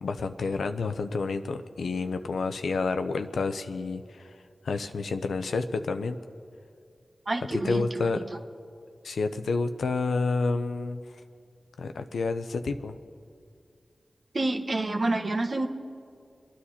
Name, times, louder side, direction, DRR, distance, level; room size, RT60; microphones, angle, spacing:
voice 1, 0.0-4.3 4.6-6.2 7.6-8.2 9.0-11.0 11.8-13.0, left 4 dB, 90° left, 8 dB, 0.6 m, -29 dB
voice 2, 7.2-8.2 14.3-15.7, right 2 dB, 55° right, 4 dB, 1.3 m, -28 dB
27.5 x 10.0 x 4.2 m, 2.3 s
cardioid pair, 40°, 0 cm